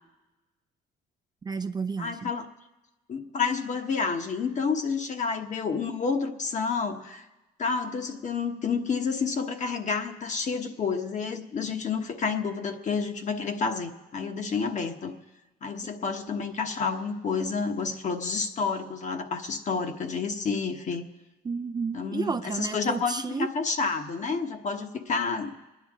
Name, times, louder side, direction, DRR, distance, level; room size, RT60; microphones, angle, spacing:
voice 1, 1.4-2.3 15.8-15.9 21.4-23.5, right 5 dB, 25° right, 6 dB, 0.4 m, -32 dB
voice 2, 2.0-2.5 3.1-7.2 7.6-15.1 15.6-21.1 21.9-25.5, left 5 dB, 45° left, 5 dB, 1.2 m, -29 dB
30.0 x 10.0 x 3.7 m, 1.1 s
cardioid pair, 95°, 17 cm